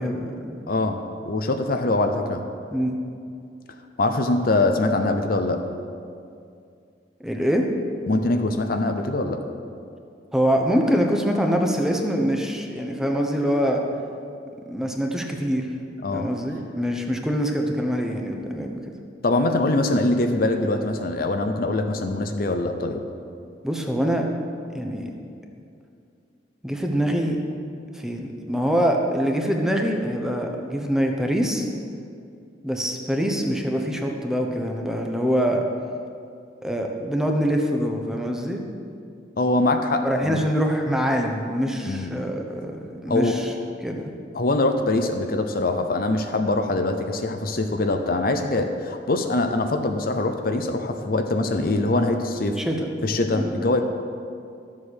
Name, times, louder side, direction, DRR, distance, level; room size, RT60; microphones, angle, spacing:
voice 1, 0.0-0.6 2.7-3.0 7.2-7.7 10.3-13.8 14.7-15.7 16.1-18.9 23.6-24.3 24.7-25.1 26.6-27.4 27.9-31.7 32.6-35.6 36.6-38.6 40.0-43.5 43.8-44.1 52.6-52.9 53.3-53.5, equal, 5° right, 2 dB, 0.9 m, -24 dB
voice 2, 0.7-2.4 4.0-5.6 8.1-9.4 16.0-16.3 19.2-23.0 39.4-40.4 41.8-42.1 43.1-43.4 44.3-52.6 53.0-53.8, left 2 dB, 55° left, 6 dB, 0.7 m, -23 dB
12.5 x 7.5 x 6.4 m, 2.4 s
head